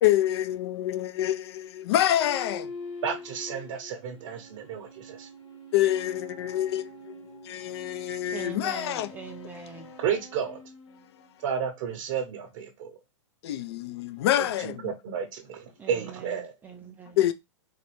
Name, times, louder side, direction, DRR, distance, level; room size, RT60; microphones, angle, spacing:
voice 1, 0.0-2.7 5.7-9.1 9.8-9.9 13.4-14.9 17.2-17.3, left 13 dB, 55° left, 0.4 m, -26 dB
sound 1, 2.1-11.7, left 2 dB, 75° left, 1.4 m, -45 dB
voice 2, 3.0-5.3 10.0-10.6 11.4-13.0 14.4-16.5, right 7 dB, 50° right, 0.7 m, -32 dB
voice 3, 8.3-9.9 15.8-16.3 16.6-17.2, right 6 dB, 10° right, 0.3 m, -41 dB
3.9 x 2.1 x 2.9 m
hypercardioid pair, 130°, 16 cm